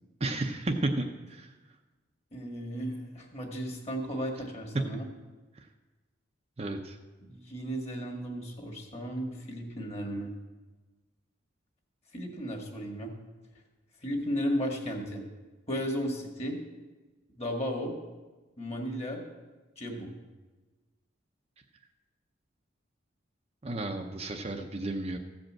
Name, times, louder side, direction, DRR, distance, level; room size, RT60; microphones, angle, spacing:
voice 1, 0.2-1.5 6.6-7.0 23.6-25.2, right 2 dB, 30° right, 4 dB, 0.6 m, -32 dB
voice 2, 2.3-5.0 7.3-10.3 12.1-13.1 14.0-15.2 15.7-16.6 17.4-17.9 18.6-19.2 19.8-20.1, equal, 30° left, 1 dB, 1.7 m, -34 dB
14.5 x 5.2 x 7.4 m, 1.3 s
head